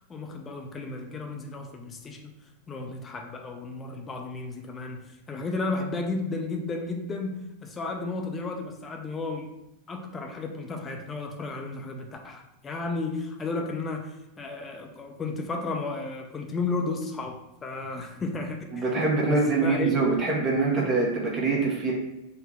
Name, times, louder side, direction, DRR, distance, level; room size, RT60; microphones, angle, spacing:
voice 1, 0.1-2.3 2.7-9.5 9.9-18.9 19.3-19.9, left 3 dB, 20° left, 2 dB, 0.5 m, -33 dB
voice 2, 18.7-21.9, right 3 dB, 25° right, -2 dB, 0.9 m, -24 dB
3.5 x 2.1 x 3.5 m, 0.90 s
figure-of-eight pair, 90°, 0 cm